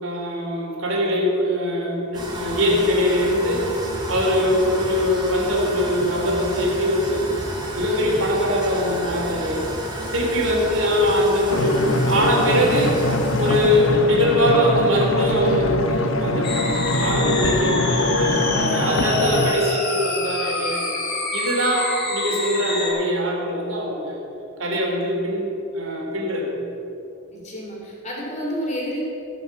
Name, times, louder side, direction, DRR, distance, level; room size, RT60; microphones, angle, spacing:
voice 1, 0.0-3.7 4.1-7.3 7.7-9.6 10.1-13.0 13.4-21.0 21.3-24.2 24.6-26.5, equal, 75° right, -2 dB, 3.2 m, -22 dB
sound 1, 2.1-16.1, equal, 20° right, 2.3 m, -32 dB
voice 2, 10.4-10.7 27.3-29.0, equal, 35° left, -3 dB, 3.4 m, -30 dB
sound 2, 11.5-19.5, left 2 dB, 70° left, 0.9 m, -23 dB
sound 3, 16.4-22.9, left 2 dB, 50° left, 3.3 m, -27 dB
16.5 x 6.6 x 7.3 m, 3.0 s
head